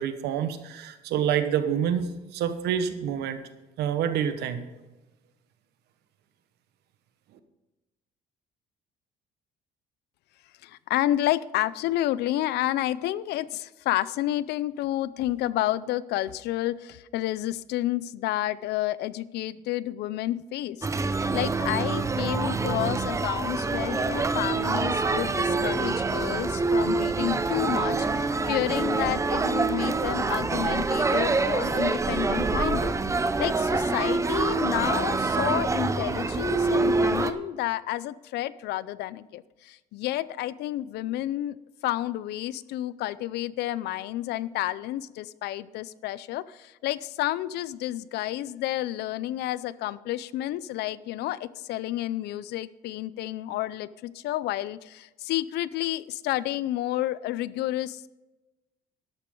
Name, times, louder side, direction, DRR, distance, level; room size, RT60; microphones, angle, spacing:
voice 1, 0.0-2.1 2.3-3.4 3.8-4.6, right 9 dB, 80° right, 10 dB, 1.3 m, -27 dB
voice 2, 10.6-41.6 41.8-58.1, left 14 dB, 80° left, 18 dB, 0.6 m, -30 dB
sound 1, 20.8-37.3, right 3 dB, 15° right, 0.7 m, -26 dB
12.5 x 11.5 x 3.8 m, 1.1 s
cardioid pair, 110°, 17 cm